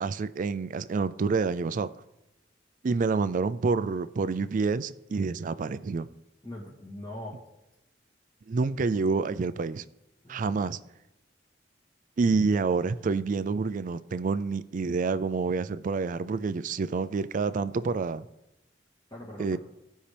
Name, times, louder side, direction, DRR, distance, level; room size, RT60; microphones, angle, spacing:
voice 1, 0.0-1.9 2.8-6.1 8.5-9.8 10.3-10.8 12.2-18.3 19.4-19.6, right 4 dB, 45° right, 0.4 m, -28 dB
voice 2, 6.4-7.5 10.2-10.7 19.1-19.6, left 1 dB, 20° left, 1.9 m, -42 dB
16.0 x 5.6 x 3.4 m
head